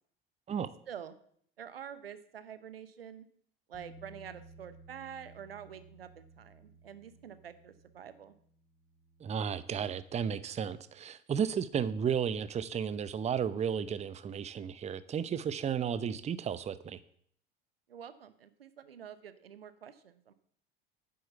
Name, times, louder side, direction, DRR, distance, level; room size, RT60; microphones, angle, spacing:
voice 1, 1.6-3.2 3.7-8.3 17.9-20.3, right 8 dB, 80° right, 13 dB, 0.9 m, -47 dB
Bass guitar, 3.7-10.0, right 2 dB, 35° left, 4.3 m, -57 dB
voice 2, 9.2-17.0, right 7 dB, 25° right, 15 dB, 0.7 m, -33 dB
9.4 x 7.7 x 6.9 m, 0.62 s
figure-of-eight pair, 70°, 29 cm